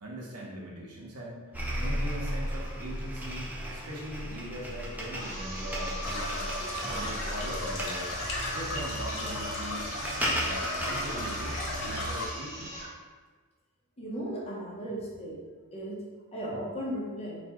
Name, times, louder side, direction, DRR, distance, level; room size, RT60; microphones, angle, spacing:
voice 1, 0.0-6.4 6.9-8.1 8.5-9.9 10.4-12.7, right 1 dB, 90° right, -3 dB, 0.9 m, -41 dB
sound 1, 1.5-12.2, equal, 10° right, 0.4 m, -35 dB
sound 2, 5.1-13.0, right 1 dB, 40° right, 0.8 m, -40 dB
sound 3, 6.0-12.3, left 2 dB, 65° left, 0.7 m, -36 dB
voice 2, 14.0-15.4 15.7-16.0 16.3-17.4, equal, 30° left, -5 dB, 0.8 m, -36 dB
4.1 x 2.3 x 2.9 m, 1.4 s
head